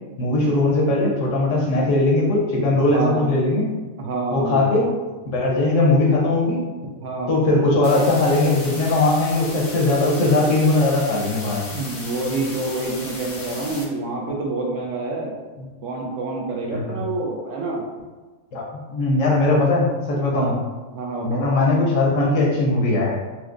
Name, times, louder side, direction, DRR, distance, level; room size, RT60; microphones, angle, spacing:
voice 1, 0.2-3.7 4.3-4.9 5.3-6.6 7.3-11.6 15.6-15.7 16.7-17.0 18.5-18.6 18.9-20.6 21.2-23.1, left 2 dB, 70° left, -2 dB, 1.0 m, -19 dB
voice 2, 2.8-3.3 4.0-5.0 7.0-7.3 11.7-15.4 15.8-17.8 20.3-20.6 20.9-21.5, right 2 dB, 70° right, -1 dB, 0.9 m, -27 dB
sound 1, 7.8-13.8, left 2 dB, 50° left, 0.6 m, -35 dB
4.4 x 2.0 x 2.4 m, 1.3 s
omnidirectional pair, 1.4 m